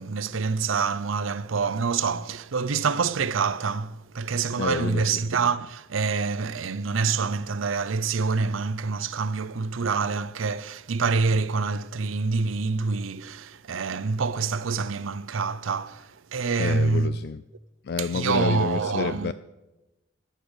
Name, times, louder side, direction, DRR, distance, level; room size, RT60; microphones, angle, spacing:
voice 1, 0.0-17.2 18.0-19.3, right 4 dB, 80° right, 0.6 m, -26 dB
voice 2, 4.6-5.2 16.6-17.4 17.8-19.3, left 5 dB, 50° left, 0.3 m, -29 dB
13.0 x 6.7 x 8.9 m
head